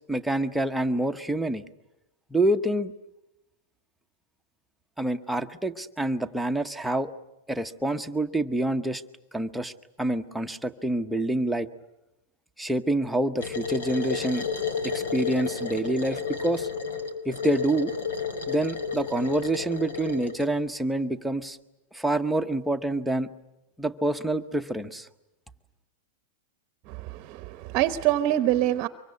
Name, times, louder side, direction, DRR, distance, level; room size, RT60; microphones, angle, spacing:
voice 1, 0.1-1.6 2.3-2.9 5.0-7.1 7.5-9.0 9.3-9.7 10.0-11.7 12.6-14.4 14.8-16.7 17.2-17.9 18.5-21.6 21.9-23.3 23.8-25.1, right 1 dB, ahead, 5 dB, 0.9 m, -27 dB
sound 1, 13.4-20.5, left 6 dB, 85° left, 4.5 m, -32 dB
voice 2, 26.9-28.9, right 13 dB, 35° right, 12 dB, 0.9 m, -25 dB
24.5 x 23.5 x 9.5 m, 0.92 s
supercardioid pair, 155°, 0 cm